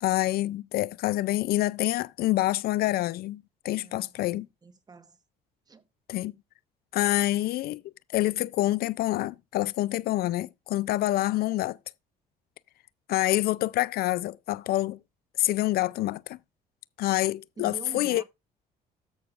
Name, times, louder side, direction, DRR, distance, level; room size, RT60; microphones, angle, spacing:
voice 1, 0.0-4.5 6.1-6.3 6.9-7.8 8.1-11.8 13.1-15.0 15.4-16.4 17.0-18.2, left 16 dB, 65° left, 0.4 m, -27 dB
voice 2, 3.8-5.2 5.7-5.8 17.6-18.2, right 5 dB, 25° right, 1.1 m, -46 dB
13.0 x 6.2 x 2.5 m
cardioid pair, 110°, 17 cm